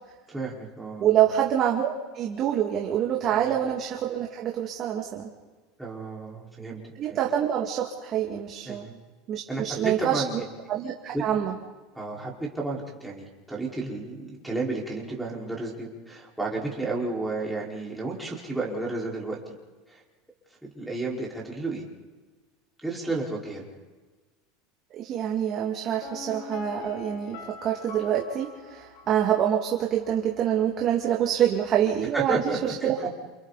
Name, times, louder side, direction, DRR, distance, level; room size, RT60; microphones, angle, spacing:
voice 1, 0.3-1.2 3.3-3.6 5.8-6.8 7.1-7.2 8.6-8.9 9.5-10.4 11.1-11.2 11.9-19.4 19.9-20.0 20.6-21.8 22.8-23.7 32.1-33.1, right 3 dB, ahead, -4 dB, 5.0 m, -32 dB
voice 2, 1.0-5.3 7.0-8.9 9.3-10.2 10.7-11.5 24.9-33.1, right 10 dB, 35° right, 0 dB, 2.3 m, -26 dB
Piano, 26.0-29.8 30.0-30.1, left 6 dB, 75° left, 6.1 m, -42 dB
29.0 x 28.5 x 4.2 m, 1.3 s
supercardioid pair, 145°, 0 cm